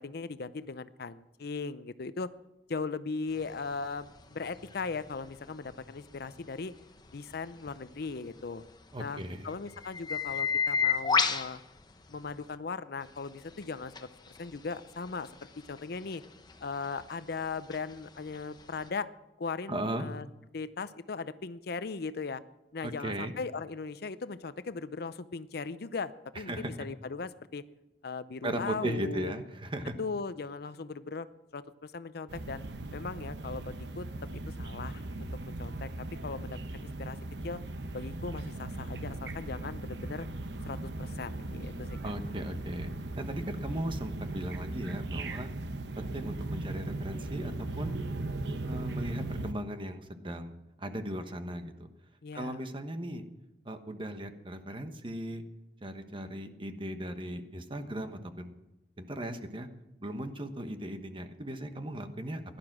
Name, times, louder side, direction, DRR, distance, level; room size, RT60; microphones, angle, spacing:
voice 1, 0.0-2.3 2.7-6.7 7.1-8.6 9.0-11.6 12.1-14.1 14.4-15.3 15.7-16.2 16.6-19.1 19.4-20.3 20.5-22.4 22.7-27.6 28.0-29.3 30.0-31.3 31.5-32.6 32.9-34.1 34.6-35.9 36.2-37.2 37.4-37.6 37.9-40.3 40.7-42.1 52.2-52.6, left 4 dB, 65° left, 14 dB, 0.6 m, -38 dB
sound 1, 3.3-12.6 13.0-18.9, left 6 dB, 25° left, 0.9 m, -35 dB
voice 2, 8.9-9.5 19.7-20.1 22.8-23.3 26.5-26.7 28.4-29.9 42.0-42.9 43.2-45.5 46.0-47.9 48.6-51.9 52.3-53.2 53.6-55.4 55.8-58.5 59.0-59.7 60.0-62.4, right 1 dB, 30° right, 8 dB, 1.2 m, -37 dB
sound 2, 32.3-49.5, right 2 dB, 80° right, 1.0 m, -38 dB
16.5 x 12.0 x 6.1 m, 0.96 s
head